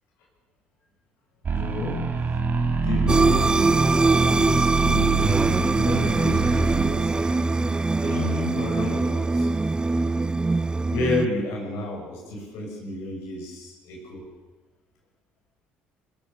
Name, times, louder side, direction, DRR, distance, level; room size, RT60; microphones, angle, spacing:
sound 1, 1.4-6.8, right 4 dB, 40° right, 2.9 m, -25 dB
voice 1, 1.5-2.1 2.8-3.5 4.3-5.3 5.8-7.7 8.0-9.5 10.9-14.3, left 3 dB, 80° left, -1 dB, 7.3 m, -31 dB
sound 2, 3.1-11.3, right 3 dB, 20° right, 0.7 m, -23 dB
21.0 x 19.5 x 6.9 m, 1.2 s
supercardioid pair, 70°, 5 cm